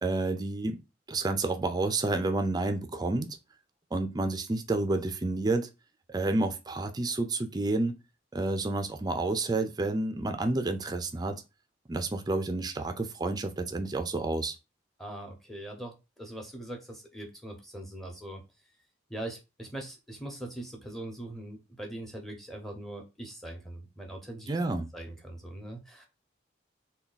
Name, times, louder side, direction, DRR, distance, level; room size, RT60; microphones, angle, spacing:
voice 1, 0.0-0.8 1.1-3.4 3.9-5.7 6.1-8.0 8.3-11.4 11.9-14.6 24.5-24.9, right 2 dB, 20° right, 0.4 m, -30 dB
voice 2, 15.0-18.4 19.1-24.5 24.9-26.1, right 1 dB, ahead, 0.7 m, -41 dB
3.4 x 2.3 x 3.9 m
head